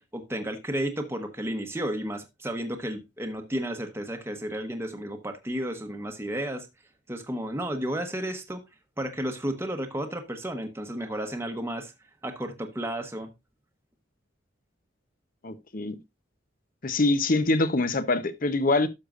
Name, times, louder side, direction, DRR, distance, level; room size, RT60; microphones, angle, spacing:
voice 1, 0.1-6.7 7.1-8.6 9.0-11.9 12.2-13.3, right 1 dB, 15° right, 1.0 m, -32 dB
voice 2, 15.4-16.0 16.8-18.9, left 2 dB, 45° left, 0.8 m, -24 dB
12.0 x 6.5 x 2.5 m
head